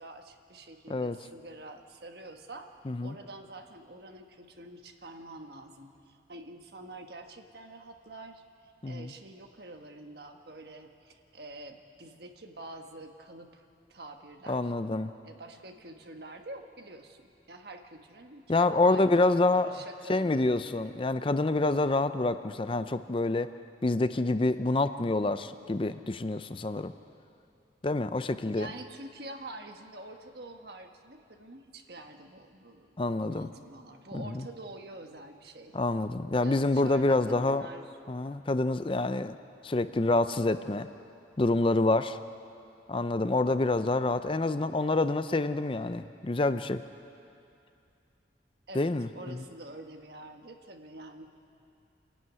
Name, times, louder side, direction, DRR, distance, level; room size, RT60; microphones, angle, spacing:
voice 1, 0.0-2.7 3.0-14.7 15.2-20.5 28.5-35.7 36.4-38.0 48.7-51.3, right 2 dB, 60° right, 4 dB, 1.5 m, -47 dB
voice 2, 2.9-3.2 8.8-9.1 14.5-15.1 18.5-19.7 20.1-23.5 23.8-26.9 27.8-28.7 33.0-33.5 34.1-34.4 35.7-37.6 38.1-39.4 39.6-40.9 41.4-42.2 42.9-46.8 48.7-49.4, left 2 dB, 30° left, 11 dB, 0.5 m, -27 dB
27.0 x 11.5 x 9.5 m, 2.5 s
head